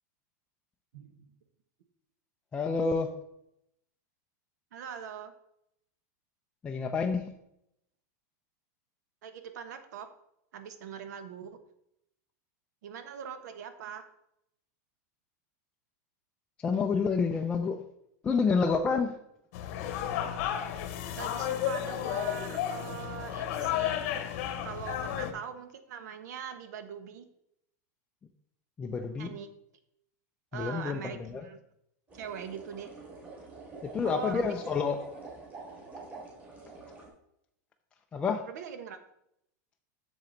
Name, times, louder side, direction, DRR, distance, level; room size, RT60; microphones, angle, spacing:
voice 1, 0.9-1.2 4.7-5.3 9.2-10.1 10.5-11.6 12.8-14.1 21.2-24.0 24.6-27.2 29.2-29.5 30.5-31.6 32.1-32.9 34.0-34.5 38.5-39.0, right 8 dB, 75° right, 9 dB, 1.2 m, -42 dB
voice 2, 2.5-3.1 6.6-7.4 16.6-17.8 18.2-19.2 28.8-29.3 30.5-31.4 33.8-35.1 38.1-38.4, left 5 dB, 10° left, 3 dB, 0.4 m, -29 dB
sound 1, 19.5-25.3, left 10 dB, 45° left, 0.9 m, -33 dB
sound 2, 32.1-37.1, right 3 dB, 15° right, 2.7 m, -47 dB
7.5 x 7.0 x 4.0 m, 0.77 s
supercardioid pair, 170°, 9 cm